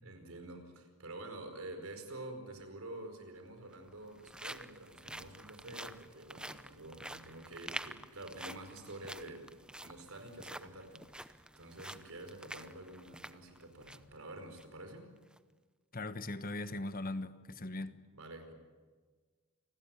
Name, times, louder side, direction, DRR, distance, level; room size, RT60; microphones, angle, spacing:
voice 1, 0.0-15.1 17.7-17.9 18.1-18.5, right 1 dB, 70° right, 5.0 m, -48 dB
sound 1, 2.6-2.7 3.6-14.1 14.5-14.6 15.2-15.4, right 1 dB, 5° right, 0.8 m, -48 dB
voice 2, 15.9-18.0, left 2 dB, 40° left, 1.3 m, -39 dB
28.5 x 20.5 x 9.1 m
head